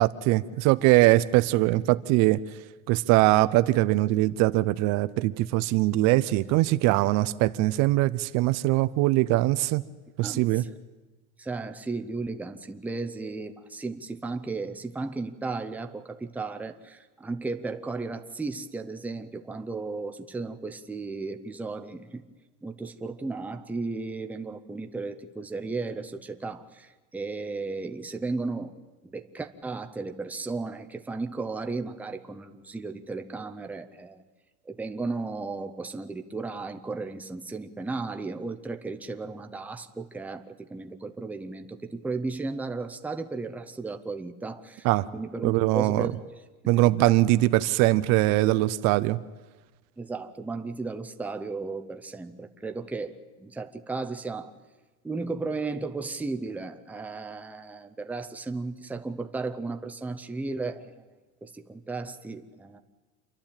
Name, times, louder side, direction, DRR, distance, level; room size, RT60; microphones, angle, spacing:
voice 1, 0.0-2.4 2.9-9.8 10.2-10.6 44.8-45.1 45.4-46.1 46.7-49.2, right 18 dB, 50° right, 13 dB, 0.6 m, -22 dB
voice 2, 10.2-10.8 11.4-22.2 22.6-28.7 29.0-34.2 34.7-44.9 45.1-46.2 46.8-47.1 50.0-54.5 55.0-60.9 61.4-62.8, right 3 dB, 5° right, 6 dB, 0.7 m, -35 dB
28.0 x 11.5 x 8.9 m, 1.3 s
cardioid pair, 155°, 35 cm